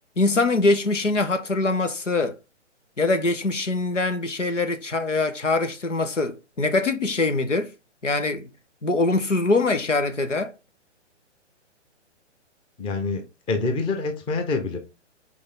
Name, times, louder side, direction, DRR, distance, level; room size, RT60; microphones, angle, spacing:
voice 1, 0.2-2.3 3.0-7.7 8.0-8.5 8.8-10.5, left 3 dB, 85° left, 1.5 m, -23 dB
voice 2, 12.8-14.8, left 3 dB, 15° left, 1.0 m, -26 dB
5.4 x 4.3 x 5.3 m
figure-of-eight pair, 130°, 36 cm